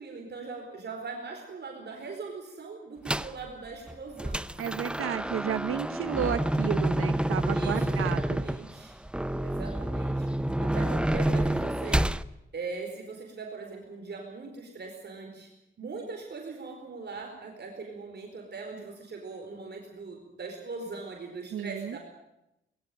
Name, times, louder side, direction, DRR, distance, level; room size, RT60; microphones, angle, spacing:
voice 1, 0.0-4.4 7.5-9.0 9.4-10.3 10.6-12.1 12.5-15.5 15.8-22.0, right 4 dB, 55° right, 2 dB, 4.6 m, -40 dB
sound 1, 3.1-3.4 3.9-12.2, right 1 dB, 5° right, 0.7 m, -28 dB
voice 2, 4.6-8.4 21.5-22.0, right 9 dB, 90° right, 11 dB, 1.0 m, -32 dB
21.0 x 16.0 x 9.2 m, 0.89 s
cardioid pair, 90°, 21 cm